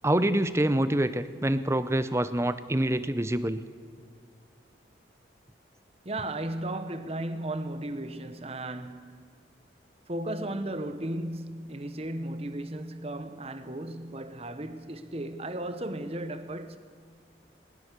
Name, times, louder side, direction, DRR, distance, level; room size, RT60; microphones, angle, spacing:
voice 1, 0.0-3.6, right 1 dB, 15° right, 0.7 m, -26 dB
voice 2, 6.0-9.3 10.1-16.8, right 1 dB, 35° right, 1.1 m, -35 dB
21.0 x 20.5 x 6.8 m
head